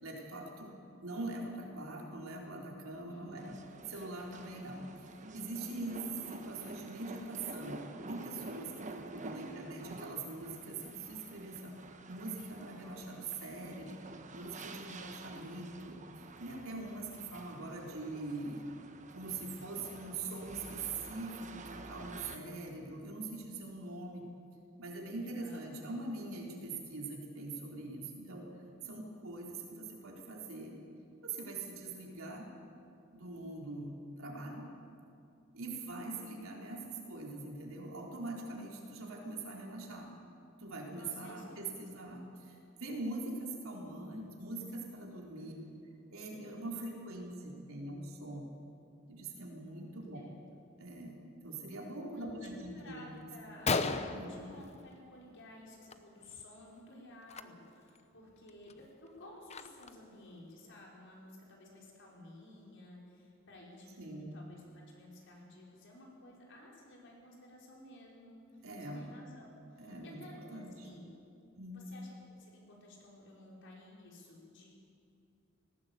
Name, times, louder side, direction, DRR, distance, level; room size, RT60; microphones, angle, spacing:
voice 1, 0.0-0.7 1.0-3.6 3.9-11.8 12.1-14.0 14.3-18.7 19.1-24.2 24.8-28.5 28.8-30.8 31.2-32.5 33.1-34.7 35.5-40.1 40.6-45.5 46.1-48.5 49.1-50.2 50.8-53.1 54.1-54.3 64.0-64.3 68.6-69.1 69.8-70.9 71.6-71.9, right 2 dB, 70° right, -1 dB, 3.9 m, -43 dB
voice 2, 2.9-3.4 9.1-10.0 19.6-20.3 25.2-25.7 40.9-42.4 44.0-44.4 45.4-45.7 50.1-50.3 52.1-53.7 54.1-68.7 68.9-71.1 71.7-74.7, left 1 dB, 60° left, -2 dB, 5.2 m, -54 dB
sound 1, 3.4-22.4, right 3 dB, 35° right, 1.2 m, -49 dB
Gunshot gunfire, 53.0-53.1 53.4-53.5 53.7-55.3 55.6-56.0 56.2-56.4 57.2-57.4 58.0-58.1 58.5-60.1, left 4 dB, 30° left, 0.8 m, -36 dB
19.0 x 16.5 x 8.4 m, 2.6 s
head